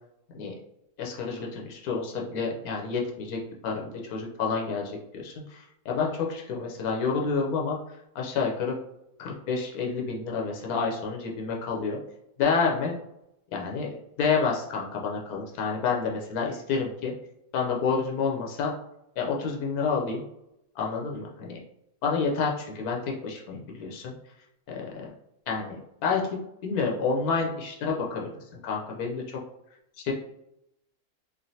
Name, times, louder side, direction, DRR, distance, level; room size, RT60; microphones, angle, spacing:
voice 1, 1.0-8.8 9.2-12.0 12.4-13.0 13.5-17.1 17.5-18.7 19.2-20.2 20.8-21.6 22.0-24.1 24.7-24.9 25.5-25.8 26.0-28.3 28.6-29.4 30.0-30.1, left 5 dB, 85° left, -1 dB, 1.1 m, -29 dB
3.2 x 2.5 x 2.6 m, 0.82 s
omnidirectional pair, 1.5 m